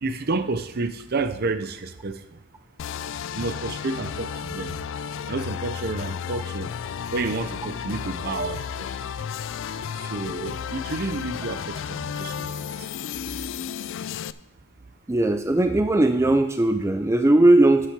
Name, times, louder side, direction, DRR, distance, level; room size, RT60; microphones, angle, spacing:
voice 1, 0.0-2.4 3.3-4.8 5.2-6.8 7.1-9.1 9.9-12.9, right 3 dB, 50° right, 11 dB, 0.7 m, -30 dB
sound 1, 2.8-14.3, left 7 dB, 60° left, 0.3 m, -33 dB
voice 2, 15.1-17.9, right 2 dB, 15° right, 7 dB, 0.4 m, -18 dB
10.0 x 7.6 x 4.7 m, 0.81 s
head